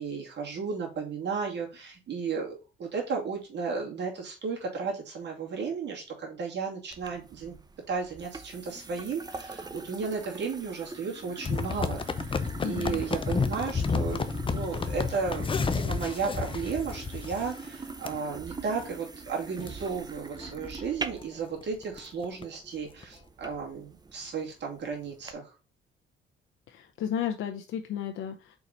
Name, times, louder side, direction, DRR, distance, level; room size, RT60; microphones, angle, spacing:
voice 1, 0.0-7.6 7.9-25.5, right 5 dB, 60° right, -1 dB, 2.4 m, -34 dB
sound 1, 6.9-25.3, right 4 dB, 20° right, 0.7 m, -44 dB
sound 2, 11.4-17.7 18.0-18.2 18.7-18.9 19.3-19.4 19.6-19.7 20.3-20.5 20.8-20.9 21.2-21.3 21.6-22.4 23.0-23.1, left 5 dB, 25° left, 0.7 m, -31 dB
voice 2, 12.6-13.0 26.7-28.6, left 9 dB, 80° left, 4 dB, 0.7 m, -33 dB
4.7 x 4.0 x 5.2 m, 0.32 s
cardioid pair, 90°, 20 cm